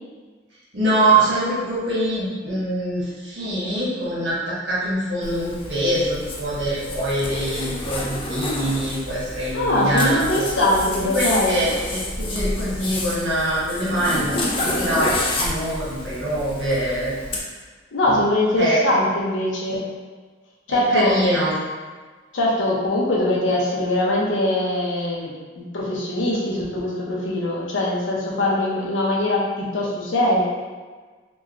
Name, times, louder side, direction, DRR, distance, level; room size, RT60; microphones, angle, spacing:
voice 1, 0.7-10.4 11.0-14.4 14.6-17.1 18.6-18.8 20.7-21.6, right 1 dB, 65° right, -9 dB, 1.1 m, -23 dB
Zipper (clothing), 5.2-17.4, left 1 dB, 30° left, 0.3 m, -29 dB
voice 2, 9.5-11.6 17.9-19.9 20.7-21.1 22.3-30.4, left 1 dB, 80° left, -4 dB, 0.6 m, -22 dB
2.9 x 2.2 x 2.4 m, 1.4 s
head